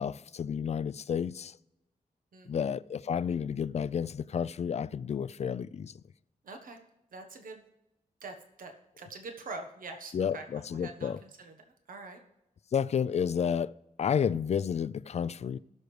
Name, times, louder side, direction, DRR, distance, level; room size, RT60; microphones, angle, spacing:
voice 1, 0.0-1.6 2.5-5.9 10.1-11.2 12.7-13.7 14.0-15.6, left 7 dB, 50° left, 0.4 m, -31 dB
voice 2, 2.3-2.7 6.4-6.8 7.1-7.6 8.2-10.4 10.7-11.5 11.9-12.2, right 3 dB, 75° right, 1.2 m, -44 dB
19.0 x 6.5 x 3.3 m
wide cardioid pair, 115°, 14 cm